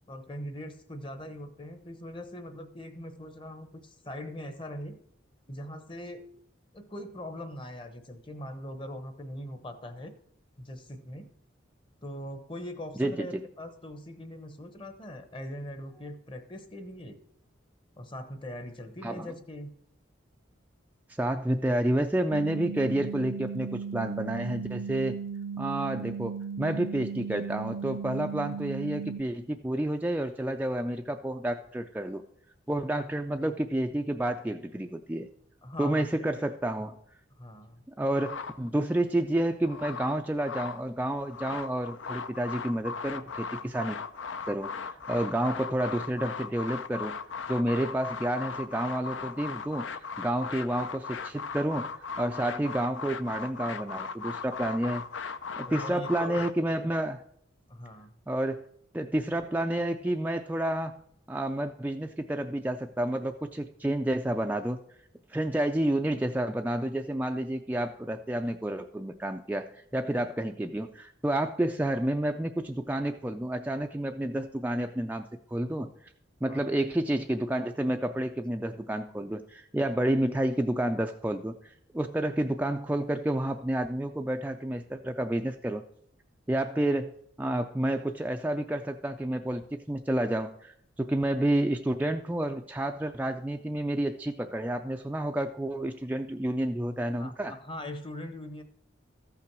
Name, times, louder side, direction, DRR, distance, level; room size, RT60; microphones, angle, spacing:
voice 1, 0.1-5.0 5.5-6.2 6.7-10.1 10.6-11.3 12.0-17.2 18.0-19.7 35.6-36.5 37.4-37.8 55.6-56.4 57.7-58.2 76.4-76.8 97.2-98.6, left 1 dB, 25° left, 9 dB, 0.9 m, -41 dB
voice 2, 21.1-25.2 25.6-32.2 32.7-35.3 35.8-36.9 38.0-44.0 44.5-44.7 45.1-47.1 47.5-55.0 55.6-57.2 58.3-58.6 58.9-61.0 61.3-64.8 65.3-69.7 69.9-75.9 76.4-85.8 86.5-87.1 87.4-97.5, right 1 dB, 10° right, 4 dB, 0.3 m, -30 dB
sound 1, 22.3-29.2, right 6 dB, 70° right, 0.5 m, -36 dB
sound 2, 38.1-39.0 39.5-40.8 41.2-56.5, left 5 dB, 80° left, 0.6 m, -38 dB
14.0 x 5.8 x 6.0 m, 0.69 s
head